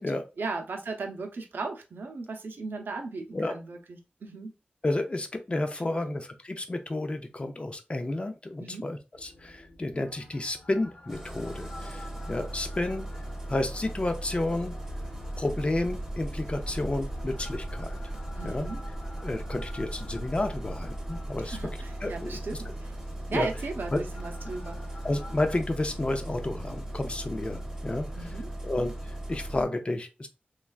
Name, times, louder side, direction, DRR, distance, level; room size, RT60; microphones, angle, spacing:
voice 1, 0.4-4.5 5.9-6.2 8.6-8.9 18.4-18.8 21.4-22.9 23.3-24.8 28.1-28.5, right 3 dB, 85° right, 3 dB, 0.6 m, -36 dB
voice 2, 4.8-14.7 15.4-17.9 18.4-18.7 19.2-21.6 22.0-22.3 23.3-23.5 23.9-24.0 25.0-28.1 28.6-30.3, left 2 dB, 35° left, 7 dB, 0.5 m, -31 dB
sound 1, 9.1-25.6, equal, 65° left, 1.0 m, -44 dB
Engine starting, 11.1-29.6, right 1 dB, 10° right, 1.0 m, -38 dB
3.2 x 2.3 x 2.3 m, 0.28 s
wide cardioid pair, 70°, 3 cm